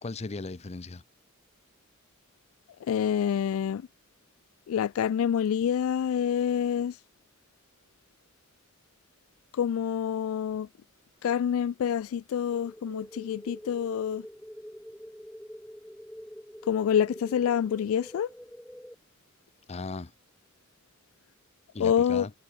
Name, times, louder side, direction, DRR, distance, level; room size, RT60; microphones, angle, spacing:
voice 1, 0.0-1.0 19.7-20.1 21.7-22.3, left 3 dB, 30° left, 0.6 m, -37 dB
voice 2, 2.9-3.8 4.7-7.0 9.5-10.7 11.2-14.2 16.7-18.3 21.8-22.3, left 8 dB, 65° left, 0.3 m, -27 dB
sound 1, 12.5-18.9, equal, 5° left, 2.9 m, -46 dB
head